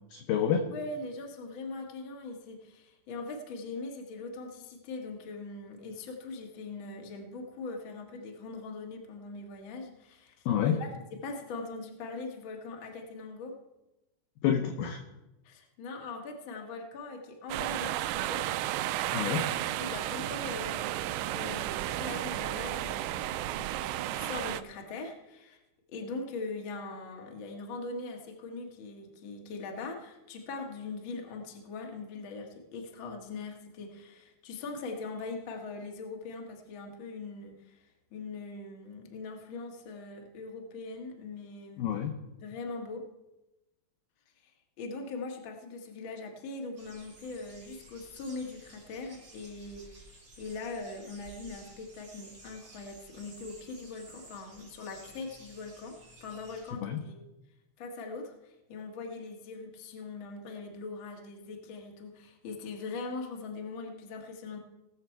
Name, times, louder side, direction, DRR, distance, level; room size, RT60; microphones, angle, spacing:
voice 1, 0.1-0.6 10.5-10.7 14.4-15.0 19.1-19.4 41.8-42.1 56.8-57.0, left 9 dB, 80° left, 6 dB, 2.0 m, -28 dB
voice 2, 0.7-10.3 10.6-13.5 15.4-18.4 19.4-19.5 19.8-25.6 25.9-37.5 38.1-41.9 42.4-43.0 44.8-49.9 50.4-57.2 57.8-58.3 58.7-64.6, left 3 dB, 60° left, 1 dB, 1.3 m, -41 dB
sound 1, 17.5-24.6, right 14 dB, 85° right, 2.7 m, -33 dB
sound 2, 46.8-56.7, right 2 dB, 25° right, 2.5 m, -54 dB
20.0 x 6.9 x 4.6 m, 0.97 s
omnidirectional pair, 4.9 m